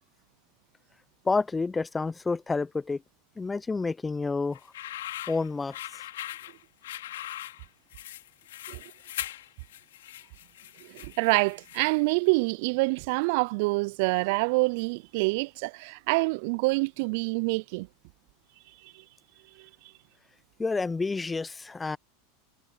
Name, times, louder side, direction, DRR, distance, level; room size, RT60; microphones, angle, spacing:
voice 1, 1.2-3.0 3.4-4.6 5.3-6.0 20.6-22.0, left 4 dB, 15° left, 0.8 m, -29 dB
sound 1, 4.5-12.1, left 13 dB, 70° left, 4.9 m, -40 dB
voice 2, 10.8-17.9 18.8-19.0 19.6-19.7, right 28 dB, 60° right, 0.4 m, -26 dB
hypercardioid pair, 90°, 0 cm